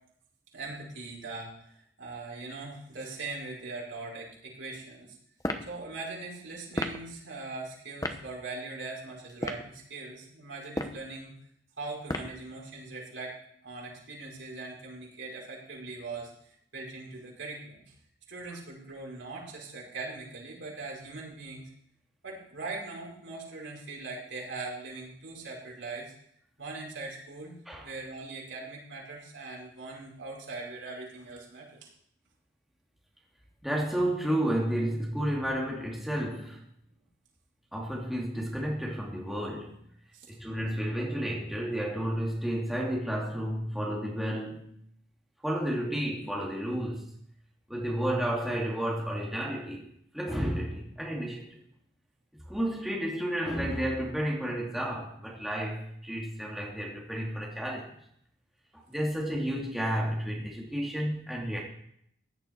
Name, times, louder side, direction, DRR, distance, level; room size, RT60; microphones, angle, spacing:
voice 1, 0.5-5.2 5.7-11.3 11.8-13.3 13.6-17.9 18.3-21.7 22.2-26.1 26.6-27.5 27.8-31.9 40.1-40.3, right 3 dB, 85° right, -3 dB, 5.3 m, -41 dB
sound 1, 5.4-5.7 6.7-7.0 8.0-8.2 9.3-9.7 10.6-11.0 12.1-12.4, left 1 dB, 20° left, 1.0 m, -32 dB
voice 2, 33.6-36.6 37.7-39.8 40.3-44.7 45.4-47.1 47.7-49.8 50.1-51.6 52.4-57.9 58.7-61.6, equal, ahead, -4 dB, 2.5 m, -31 dB
16.0 x 11.0 x 4.6 m, 0.69 s
head